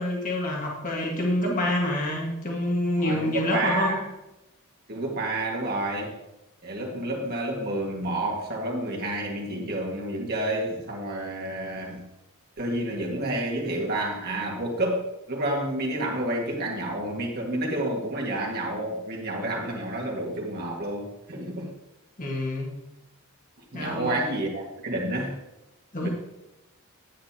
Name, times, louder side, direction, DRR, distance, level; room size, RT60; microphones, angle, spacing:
voice 1, 0.0-4.0 22.2-22.7 23.7-24.1 25.9-26.1, left 1 dB, 35° left, -2 dB, 1.8 m, -27 dB
voice 2, 3.0-4.1 4.9-6.1 6.6-12.0 12.6-21.7 23.7-25.4 26.0-26.1, right 1 dB, 45° right, -2 dB, 1.9 m, -29 dB
10.0 x 8.9 x 2.9 m, 0.96 s
head